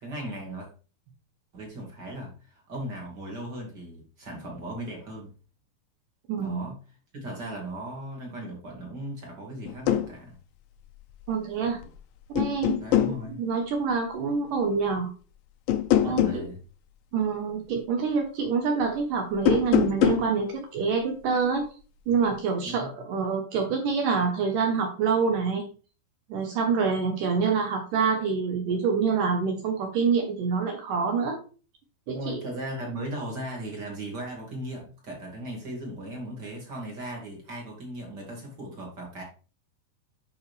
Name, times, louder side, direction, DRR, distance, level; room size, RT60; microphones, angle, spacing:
voice 1, 0.0-0.7 1.5-5.3 6.4-6.8 7.1-10.4 12.8-13.4 16.0-16.6 22.6-22.9 32.1-39.2, right 1 dB, 30° right, 0 dB, 2.1 m, -37 dB
voice 2, 6.3-6.7 11.3-11.8 12.3-12.8 13.4-15.1 16.0-16.5 17.1-21.7 22.1-25.7 26.3-31.4 32.1-32.4, right 5 dB, 70° right, 3 dB, 2.2 m, -26 dB
sound 1, 9.7-10.1 11.6-12.0 12.4-13.2 15.7-16.4 19.3-20.3, left 11 dB, 85° left, 2.0 m, -23 dB
9.2 x 5.7 x 3.4 m, 0.36 s
omnidirectional pair, 4.8 m